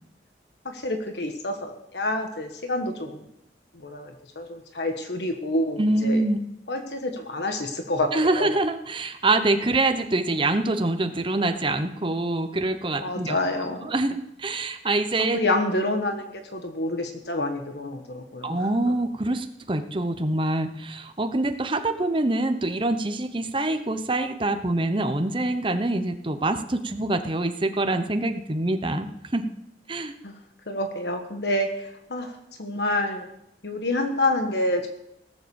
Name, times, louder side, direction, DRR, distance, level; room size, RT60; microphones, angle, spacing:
voice 1, 0.6-3.2 3.7-6.3 6.7-8.5 13.0-13.9 15.3-18.7 30.2-30.4 30.7-33.3 33.6-34.9, left 1 dB, 75° left, 5 dB, 1.4 m, -28 dB
voice 2, 5.8-6.4 8.1-13.4 13.8-15.4 18.4-29.5 29.9-30.1, right 2 dB, 30° right, 9 dB, 0.9 m, -25 dB
18.0 x 7.8 x 7.1 m, 0.79 s
head